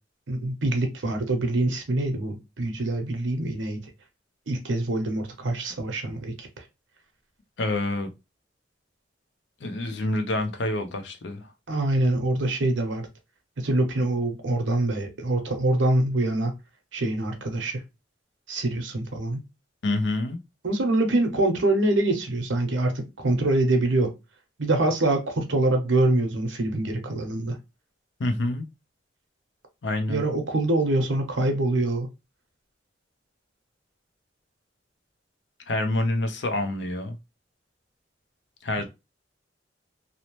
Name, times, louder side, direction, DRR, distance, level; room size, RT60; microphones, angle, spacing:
voice 1, 0.3-3.8 4.5-6.5 11.7-13.1 13.6-16.5 16.9-17.8 18.5-19.4 20.6-24.1 24.6-27.6 30.1-32.1, right 2 dB, 85° right, 0.7 m, -25 dB
voice 2, 7.6-8.1 9.6-11.5 19.8-20.4 28.2-28.7 29.8-30.2 35.7-37.2 38.6-38.8, left 2 dB, 70° left, 0.6 m, -27 dB
2.7 x 2.0 x 3.0 m
head